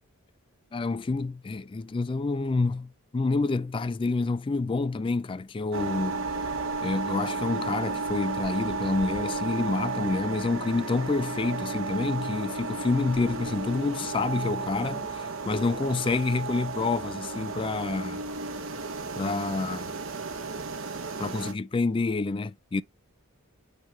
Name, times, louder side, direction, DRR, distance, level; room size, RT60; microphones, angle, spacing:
voice 1, 0.7-6.3 6.8-18.2 19.2-19.9 21.2-22.8, left 3 dB, 25° left, 0.3 m, -28 dB
sound 1, 5.7-21.5, right 4 dB, 60° right, 1.2 m, -33 dB
8.9 x 3.4 x 4.8 m
head